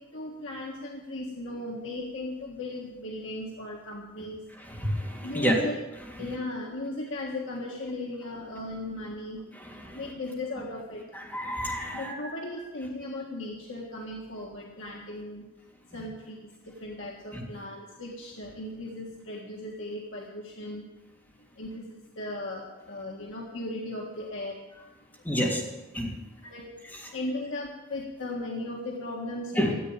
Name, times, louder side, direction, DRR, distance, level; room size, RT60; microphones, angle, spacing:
voice 1, 0.0-4.4 5.2-5.8 6.2-9.4 9.9-11.0 11.9-15.4 15.9-20.8 21.6-24.6 26.4-26.7 27.1-29.7, left 1 dB, 65° left, -1 dB, 1.6 m, -37 dB
voice 2, 4.5-5.5 6.0-6.4 9.5-10.1 11.1-12.3 15.9-16.0 17.3-17.4 25.2-25.6 25.9-26.3 26.8-27.1 29.5-29.7, equal, 10° left, -3 dB, 3.0 m, -30 dB
14.0 x 8.3 x 8.8 m, 1.1 s
head